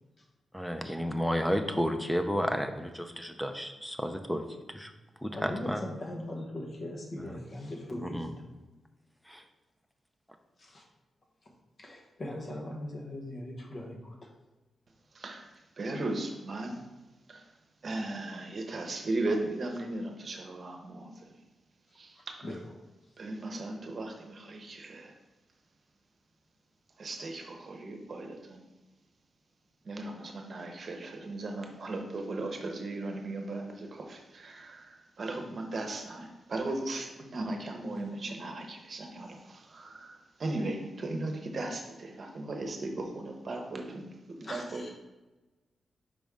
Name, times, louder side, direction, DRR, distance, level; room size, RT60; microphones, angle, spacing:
voice 1, 0.5-4.4 4.7-4.9 5.2-5.9 8.1-8.3 9.3-9.4, equal, ahead, 6 dB, 0.6 m, -32 dB
voice 2, 5.3-8.3 10.6-10.8 11.8-14.3 22.2-22.6 35.7-35.8 44.4-45.0, left 1 dB, 45° left, -1 dB, 1.2 m, -40 dB
voice 3, 15.1-16.9 17.3-17.5 17.8-21.4 21.9-22.5 23.2-25.1 27.0-28.7 29.8-44.8, right 2 dB, 45° right, 3 dB, 0.9 m, -37 dB
5.3 x 5.1 x 3.6 m, 1.1 s
wide cardioid pair, 115°, 0 cm